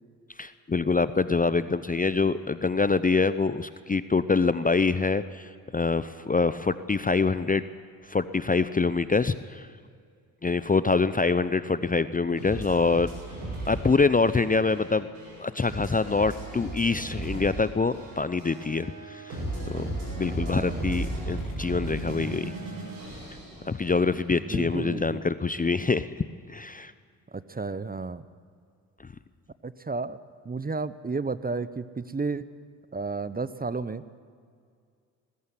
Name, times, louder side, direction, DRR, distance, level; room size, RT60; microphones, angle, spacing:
voice 1, 0.4-7.6 8.1-9.7 10.4-13.1 13.7-15.1 15.4-19.4 19.7-19.9 20.2-22.5 23.7-26.1 26.5-26.9, left 4 dB, 20° left, 14 dB, 0.7 m, -25 dB
sound 1, 12.4-24.3, right 1 dB, 85° right, 8.0 m, -35 dB
voice 2, 20.4-21.0 24.3-25.3 27.3-28.2 29.6-30.2 30.4-32.4 32.9-34.0, right 4 dB, 20° right, 15 dB, 1.0 m, -32 dB
21.0 x 15.0 x 9.9 m, 2.2 s
hypercardioid pair, 45°, 46 cm